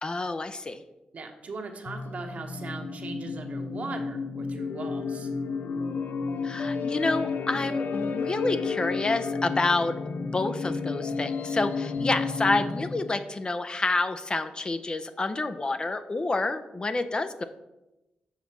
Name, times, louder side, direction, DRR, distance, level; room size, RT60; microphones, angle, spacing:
voice 1, 0.0-0.8 6.4-17.4, left 3 dB, 35° left, 10 dB, 0.6 m, -28 dB
voice 2, 1.1-5.3, right 3 dB, 55° right, 4 dB, 1.2 m, -39 dB
sound 1, 1.8-13.2, left 4 dB, 75° left, 0.6 m, -32 dB
7.2 x 4.1 x 5.9 m, 0.96 s
cardioid pair, 75°, 3 cm